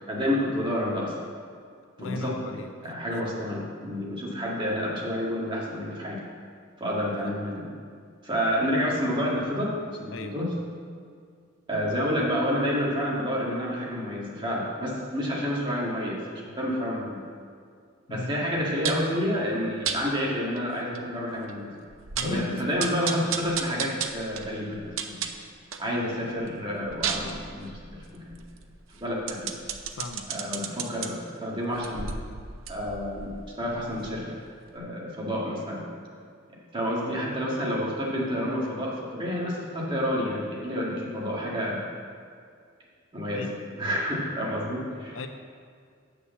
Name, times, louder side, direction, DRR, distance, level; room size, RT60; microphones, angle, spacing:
voice 1, 0.1-1.1 2.0-6.2 6.8-7.7 8.2-9.7 10.0-10.5 11.7-16.2 16.6-17.2 18.1-21.7 22.2-25.2 25.8-28.4 28.9-29.5 30.3-32.1 32.7-33.3 33.6-34.2 34.7-35.9 36.7-41.8 43.1-43.5 43.7-45.2, equal, 25° right, -5 dB, 2.2 m, -29 dB
voice 2, 2.0-2.7 3.1-3.3 7.2-7.3 10.1-10.4 18.1-18.5 22.2-22.7 23.2-23.4 29.9-30.3 43.3-43.6 45.1-45.3, left 2 dB, 70° left, 7 dB, 0.7 m, -36 dB
sound 1, 18.8-19.1 19.8-20.0 20.6-20.7 20.9-21.0 21.5-21.6 21.9-22.4 22.8-25.9 26.3-31.1 31.7-34.4 34.7-34.8, right 7 dB, 80° right, 0.7 m, -34 dB
8.3 x 6.5 x 7.0 m, 2.2 s
head